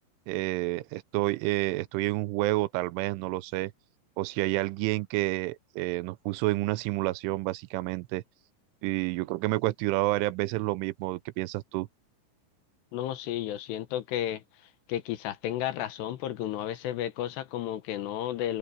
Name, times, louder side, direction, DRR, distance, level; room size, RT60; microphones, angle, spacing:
voice 1, 0.3-3.7 4.2-8.2 8.8-11.9, right 19 dB, 90° right, 3.2 m, -29 dB
voice 2, 12.9-14.4 14.9-18.6, left 12 dB, 70° left, 3.0 m, -32 dB
omnidirectional pair, 5.4 m